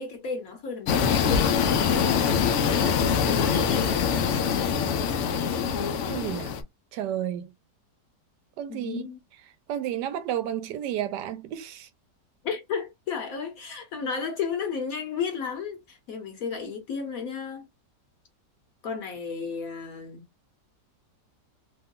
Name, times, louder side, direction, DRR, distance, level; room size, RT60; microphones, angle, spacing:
voice 1, 0.0-1.5 1.9-3.9 8.7-9.2 12.4-17.7 18.8-20.2, left 6 dB, 65° left, 1.0 m, -33 dB
sound 1, 0.9-6.6, left 7 dB, 80° left, 0.6 m, -24 dB
voice 2, 6.1-6.5 6.9-7.5 8.6-9.0 9.7-11.9, right 11 dB, 80° right, 1.2 m, -31 dB
3.0 x 2.2 x 3.5 m
omnidirectional pair, 1.8 m